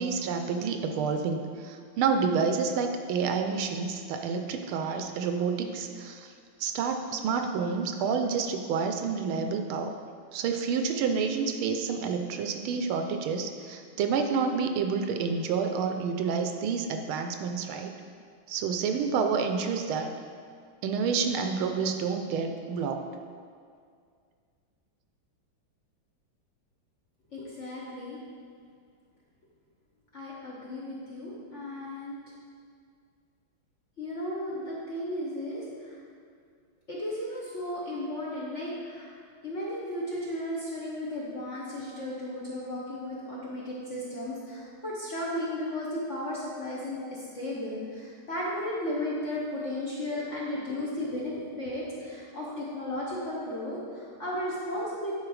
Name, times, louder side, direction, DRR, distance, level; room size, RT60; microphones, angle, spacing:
voice 1, 0.0-6.3 6.6-9.9 10.3-17.9 18.5-20.1 20.8-23.0, right 5 dB, 80° right, 6 dB, 1.4 m, -29 dB
voice 2, 27.3-28.2 30.1-32.2 34.0-36.0 36.9-39.1 39.4-55.1, left 1 dB, 50° left, -6 dB, 0.9 m, -35 dB
9.6 x 4.0 x 4.8 m, 2.2 s
omnidirectional pair, 2.4 m